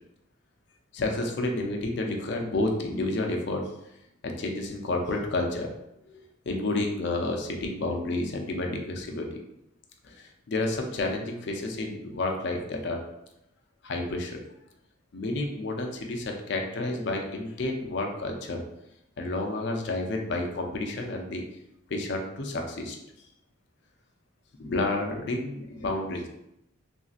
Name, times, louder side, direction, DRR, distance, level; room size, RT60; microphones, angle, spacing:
voice 1, 0.9-3.6 4.2-5.7 6.5-9.4 10.0-13.0 13.8-14.4 15.1-18.6 19.2-21.4 21.9-23.0 24.6-26.3, left 2 dB, 55° left, 2 dB, 0.4 m, -30 dB
3.1 x 2.6 x 2.4 m, 0.84 s
head